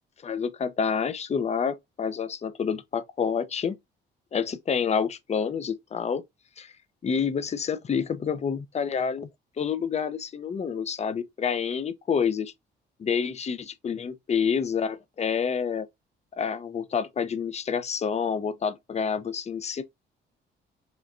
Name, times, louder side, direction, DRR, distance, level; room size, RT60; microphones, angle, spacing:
voice 1, 0.2-3.8 4.3-6.2 6.6-6.7 7.0-9.3 9.6-12.5 13.0-15.9 16.3-19.8, left 6 dB, 35° left, 0.5 m, -28 dB
5.0 x 2.1 x 2.4 m
cardioid pair, 90°, 20 cm